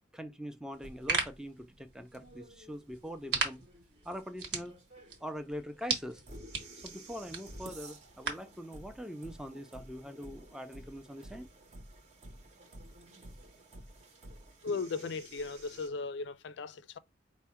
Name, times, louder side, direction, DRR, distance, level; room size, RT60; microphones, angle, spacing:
voice 1, 0.1-3.6 4.0-4.7 5.2-6.2 6.8-11.5, equal, 5° right, 0.4 m, -43 dB
sound 1, 0.7-8.6, right 4 dB, 70° right, 1.2 m, -39 dB
sound 2, 0.8-15.9, right 1 dB, 35° right, 0.8 m, -52 dB
voice 2, 14.6-17.0, left 4 dB, 75° left, 0.4 m, -37 dB
4.6 x 2.1 x 4.3 m
head